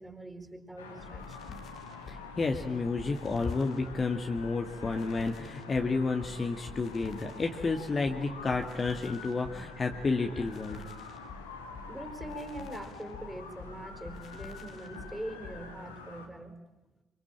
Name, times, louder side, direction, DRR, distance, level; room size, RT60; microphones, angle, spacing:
voice 1, 0.0-1.6 11.9-16.6, right 1 dB, 5° right, 6 dB, 5.2 m, -43 dB
sound 1, 0.8-16.3, left 4 dB, 85° left, 2.4 m, -46 dB
sound 2, 1.0-15.7, left 4 dB, 55° left, 2.4 m, -48 dB
voice 2, 2.1-10.8, left 3 dB, 35° left, 3 dB, 2.2 m, -31 dB
25.5 x 24.5 x 9.0 m, 1.1 s
figure-of-eight pair, 45°, 0 cm